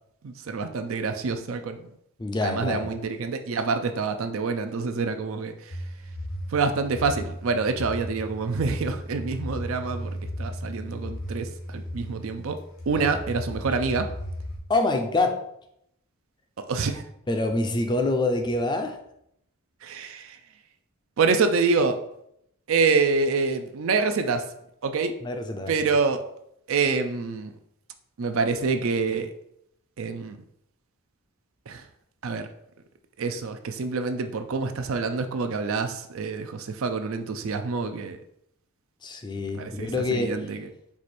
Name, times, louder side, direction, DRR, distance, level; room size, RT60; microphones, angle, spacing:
voice 1, 0.2-1.8 2.4-5.8 6.5-12.6 12.9-14.1 16.6-17.0 19.8-20.4 21.2-22.0 22.7-24.5 24.8-25.2 25.7-26.2 26.7-27.5 28.2-29.3 30.0-30.4 31.7-31.8 32.2-32.5 33.2-38.2 39.6-40.7, right 4 dB, 65° right, 8 dB, 0.4 m, -26 dB
voice 2, 2.2-2.9 12.9-13.2 13.5-13.6 14.7-15.4 17.3-19.0 25.2-25.7 39.0-40.5, left 2 dB, 20° left, 5 dB, 0.4 m, -26 dB
sound 1, 5.7-14.6, equal, 85° left, 1.3 m, -35 dB
4.7 x 2.5 x 4.2 m, 0.75 s
head